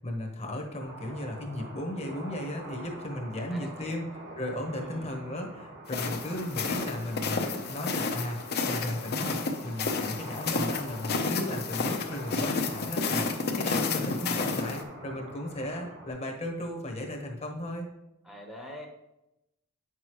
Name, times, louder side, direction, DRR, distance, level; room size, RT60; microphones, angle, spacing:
voice 1, 0.0-7.4 7.7-8.4 8.7-9.4 9.6-17.9, left 1 dB, 30° left, 2 dB, 1.1 m, -35 dB
sound 1, 0.8-16.1, right 1 dB, 55° right, 1.6 m, -45 dB
voice 2, 3.5-4.0 4.8-5.1 18.2-18.9, left 1 dB, ahead, -1 dB, 1.0 m, -44 dB
sound 2, 5.9-14.8, left 4 dB, 50° left, 0.8 m, -31 dB
8.8 x 6.2 x 3.1 m, 0.90 s
head